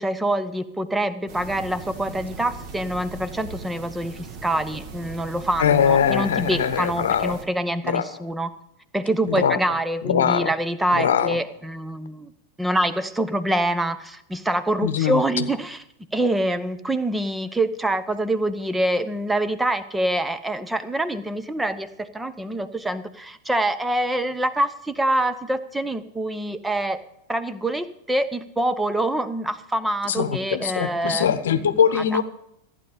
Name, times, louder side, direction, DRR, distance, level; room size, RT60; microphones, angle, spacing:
voice 1, 0.0-8.5 8.9-12.3 12.6-15.8 16.1-27.0 27.3-31.3 31.9-32.0, right 1 dB, 5° right, 12 dB, 0.8 m, -25 dB
sound 1, 1.3-7.4, right 4 dB, 40° right, 1.5 m, -39 dB
voice 2, 5.6-7.4 7.8-8.2 9.3-9.6 10.0-10.5 10.9-11.4 14.8-15.5 30.1-32.2, left 8 dB, 60° left, 12 dB, 1.0 m, -22 dB
14.5 x 9.8 x 5.0 m, 0.80 s
figure-of-eight pair, 90°, 0 cm